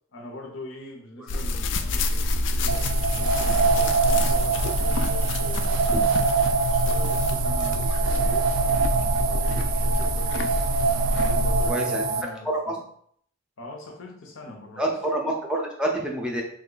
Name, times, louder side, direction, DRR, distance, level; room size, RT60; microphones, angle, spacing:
voice 1, 0.1-6.0 6.7-10.7 11.1-12.8 13.6-15.0, left 1 dB, 85° left, 2 dB, 0.7 m, -42 dB
sound 1, 1.3-11.7, left 1 dB, 65° left, 0.3 m, -26 dB
sound 2, 2.7-12.2, right 5 dB, 85° right, 0.3 m, -25 dB
voice 2, 11.7-12.0 12.5-12.8 14.8-16.4, right 1 dB, 5° right, 0 dB, 0.4 m, -27 dB
3.1 x 2.2 x 3.8 m, 0.65 s
head